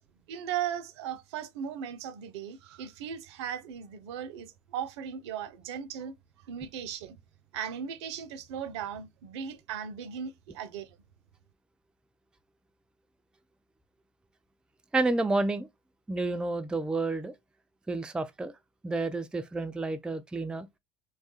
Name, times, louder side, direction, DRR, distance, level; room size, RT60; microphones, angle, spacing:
voice 1, 0.3-6.1 6.5-7.2 7.5-10.9, right 8 dB, 75° right, 0.5 m, -37 dB
voice 2, 14.9-15.7 16.1-17.3 17.9-18.5 18.8-20.7, right 2 dB, 5° right, 0.3 m, -30 dB
3.1 x 2.3 x 2.7 m
hypercardioid pair, 80°, 14 cm